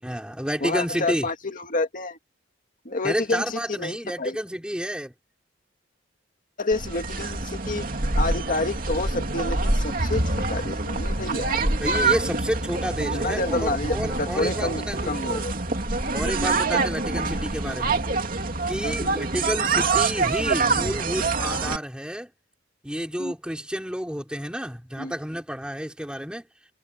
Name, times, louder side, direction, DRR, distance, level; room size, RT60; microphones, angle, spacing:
voice 1, 0.0-1.3 3.0-5.1 11.8-15.3 16.1-18.0 18.7-22.3 22.8-26.5, equal, 5° right, 4.9 m, -30 dB
voice 2, 0.6-2.2 2.9-4.4 6.6-7.8 8.2-11.6 13.1-15.5 18.8-19.2 20.6-20.9 23.2-23.3 25.0-25.1, left 2 dB, 45° left, 2.0 m, -29 dB
sound 1, 6.7-21.8, right 3 dB, 50° right, 2.8 m, -26 dB
head